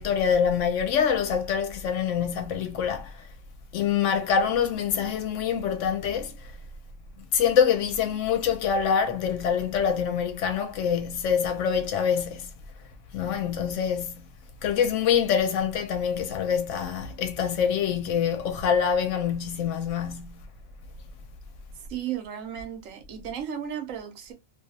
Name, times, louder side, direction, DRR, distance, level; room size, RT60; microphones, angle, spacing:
voice 1, 0.0-3.2 3.7-6.4 7.3-12.5 13.1-14.3 14.6-20.5, left 7 dB, 70° left, 0.8 m, -25 dB
voice 2, 21.9-24.3, right 9 dB, 75° right, 1.0 m, -34 dB
2.4 x 2.3 x 2.6 m
omnidirectional pair, 1.4 m